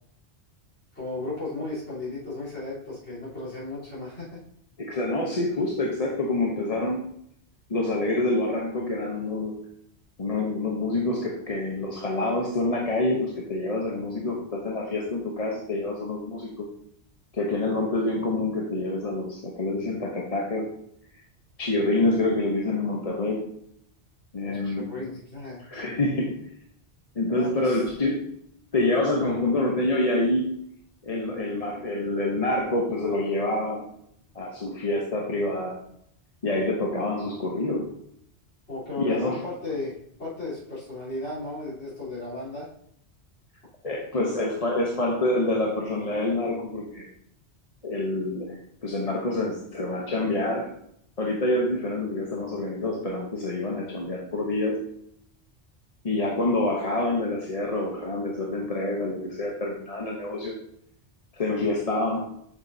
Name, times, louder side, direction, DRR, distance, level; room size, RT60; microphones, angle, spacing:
voice 1, 0.9-4.4 24.5-25.7 27.3-27.8 38.7-42.7, left 2 dB, 85° left, -10 dB, 3.7 m, -35 dB
voice 2, 4.8-7.0 7.7-9.6 10.2-16.7 17.3-20.7 21.6-23.4 24.3-24.9 25.7-26.3 27.1-28.2 28.7-30.6 31.0-33.9 34.3-35.8 36.4-37.9 39.0-39.4 43.8-47.1 47.8-50.7 51.2-54.8 56.0-60.5 61.3-62.2, left 2 dB, 35° left, -1 dB, 0.9 m, -27 dB
7.3 x 7.3 x 2.7 m, 0.70 s
omnidirectional pair, 1.1 m